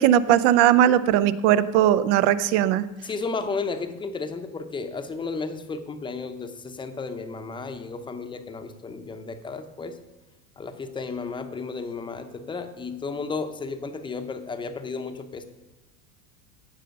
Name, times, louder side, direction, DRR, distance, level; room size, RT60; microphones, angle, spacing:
voice 1, 0.0-2.8, right 11 dB, 75° right, 15 dB, 0.7 m, -19 dB
voice 2, 3.0-10.0 10.6-15.4, left 4 dB, 15° left, 8 dB, 0.7 m, -33 dB
16.0 x 5.5 x 5.3 m, 1.1 s
supercardioid pair, 140°, 35 cm